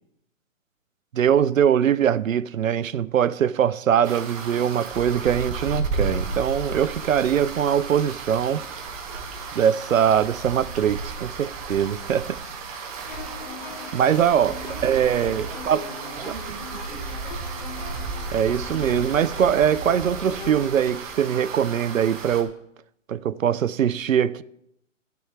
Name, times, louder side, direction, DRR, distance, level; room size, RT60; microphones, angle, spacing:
voice 1, 1.1-8.6 9.5-12.4 13.0-13.1 13.9-15.8 18.3-22.5 23.1-24.4, right 9 dB, 85° right, 0.6 m, -22 dB
sound 1, 4.0-22.4, right 4 dB, 25° right, 1.4 m, -33 dB
sound 2, 13.1-20.7, left 8 dB, 35° left, 0.8 m, -41 dB
voice 2, 14.5-17.5, right 4 dB, 65° right, 2.0 m, -42 dB
13.0 x 7.0 x 4.7 m
hypercardioid pair, 145°, 39 cm